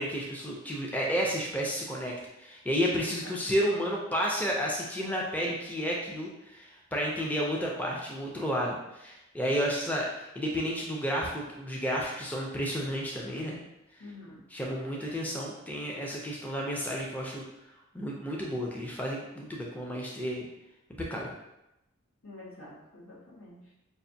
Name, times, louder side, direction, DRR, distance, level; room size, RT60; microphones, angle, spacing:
voice 1, 0.0-13.6 14.5-17.4 17.9-20.5 21.0-21.3, equal, 10° left, -3 dB, 0.4 m, -31 dB
voice 2, 3.0-3.4 14.0-14.4 22.2-23.7, left 2 dB, 75° left, -6 dB, 1.3 m, -48 dB
5.3 x 2.5 x 2.6 m, 0.90 s
head